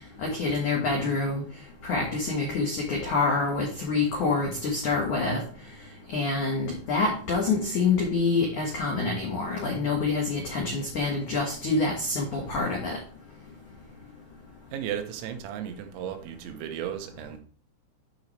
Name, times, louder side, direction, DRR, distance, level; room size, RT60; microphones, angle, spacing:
voice 1, 0.2-1.4 1.8-5.4 6.1-13.0, left 3 dB, 80° left, -1 dB, 1.7 m, -26 dB
voice 2, 14.7-17.4, right 9 dB, 90° right, 6 dB, 3.8 m, -35 dB
12.0 x 5.2 x 3.2 m, 0.41 s
omnidirectional pair, 6.0 m